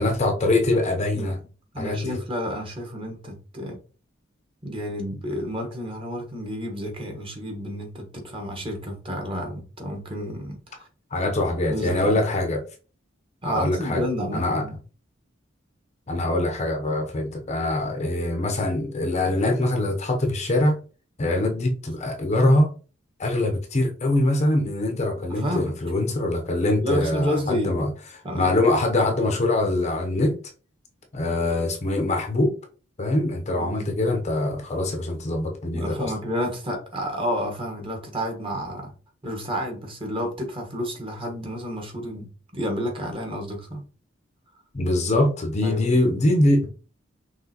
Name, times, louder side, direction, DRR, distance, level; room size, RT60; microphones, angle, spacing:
voice 1, 0.0-1.4 1.8-2.2 11.1-12.6 13.4-14.0 14.3-14.6 16.1-20.8 21.2-22.7 23.2-27.9 28.3-30.4 31.1-32.5 33.0-36.1 44.7-46.7, left 2 dB, 35° left, 0.7 m, -23 dB
voice 2, 1.7-3.8 4.6-10.9 11.7-12.2 13.4-14.7 25.3-25.7 26.8-27.8 28.2-28.5 33.5-33.9 35.7-38.9 39.2-43.8 45.6-46.0, equal, 25° right, 1.3 m, -30 dB
5.7 x 3.2 x 2.9 m
head